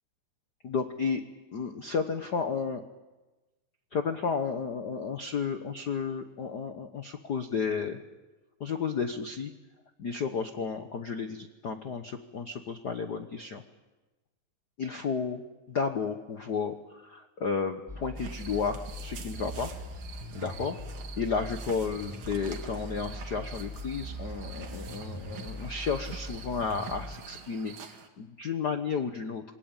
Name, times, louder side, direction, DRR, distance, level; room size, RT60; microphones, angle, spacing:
voice 1, 0.6-1.2 1.5-2.8 3.9-8.0 8.6-9.5 10.0-13.6 14.8-15.4 15.7-19.7 20.3-20.8 21.2-29.4, left 5 dB, 75° left, 7 dB, 0.9 m, -32 dB
sound 1, 17.9-27.2, equal, 5° left, 1.9 m, -41 dB
sound 2, 18.2-28.1, right 8 dB, 70° right, 3.4 m, -47 dB
27.0 x 21.0 x 8.9 m, 1.1 s
omnidirectional pair, 3.6 m